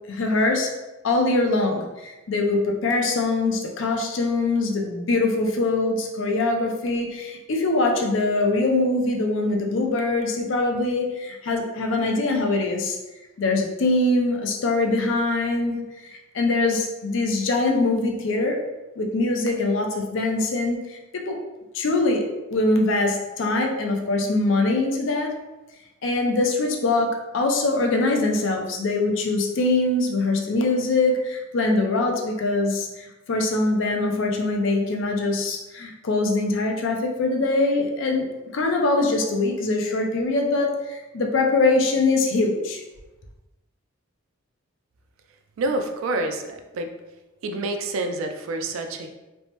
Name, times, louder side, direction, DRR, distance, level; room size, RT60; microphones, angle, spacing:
voice 1, 0.1-0.7 1.0-13.0 13.4-15.8 16.1-18.6 19.0-21.4 21.7-22.2 22.5-25.3 26.0-38.3 38.5-42.8, left 2 dB, 70° left, 2 dB, 0.5 m, -23 dB
voice 2, 45.6-46.9 47.4-49.1, right 2 dB, 80° right, 6 dB, 0.3 m, -27 dB
3.3 x 2.0 x 2.8 m, 1.1 s
head